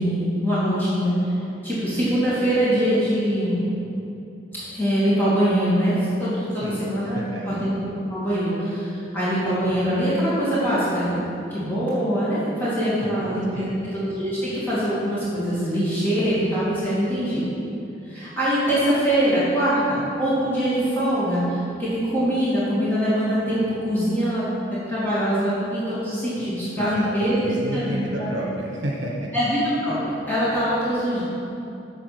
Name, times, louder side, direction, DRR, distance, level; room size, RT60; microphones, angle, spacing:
voice 1, 0.0-1.3 1.6-3.6 4.5-7.7 8.1-11.2 11.5-13.6 13.9-17.5 18.1-24.5 24.9-27.4 27.7-28.3 29.3-31.2, equal, 10° left, -11 dB, 2.4 m, -23 dB
voice 2, 7.1-7.6 13.0-13.8 26.8-27.1 27.4-29.3, right 1 dB, 70° right, -2 dB, 1.1 m, -31 dB
8.1 x 6.9 x 6.0 m, 2.8 s
head